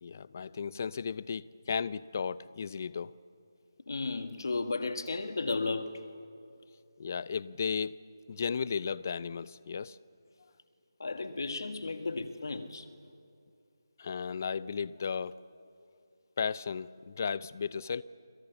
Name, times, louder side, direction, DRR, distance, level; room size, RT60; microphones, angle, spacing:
voice 1, 0.0-3.1 7.0-7.9 8.3-10.0 14.0-15.4 16.4-18.0, left 6 dB, 40° left, 0.6 m, -34 dB
voice 2, 3.9-6.0 11.0-12.9, left 3 dB, 65° left, 1.8 m, -34 dB
28.0 x 26.5 x 7.1 m
figure-of-eight pair, 165°, 2 cm